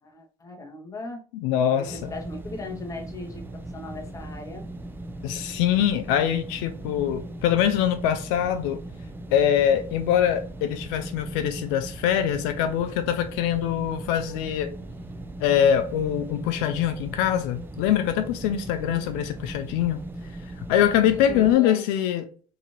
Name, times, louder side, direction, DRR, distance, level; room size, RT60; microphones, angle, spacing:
voice 1, 0.0-1.2 1.5-4.7 18.6-19.1 21.1-22.0, left 3 dB, 20° left, 0.8 m, -39 dB
voice 2, 1.4-2.1 5.2-8.8 9.3-14.7 15.4-20.1 20.7-22.2, left 10 dB, 75° left, 0.4 m, -23 dB
sound 1, 1.9-21.5, right 1 dB, 10° right, 0.4 m, -38 dB
2.8 x 2.4 x 2.9 m
supercardioid pair, 100°, 18 cm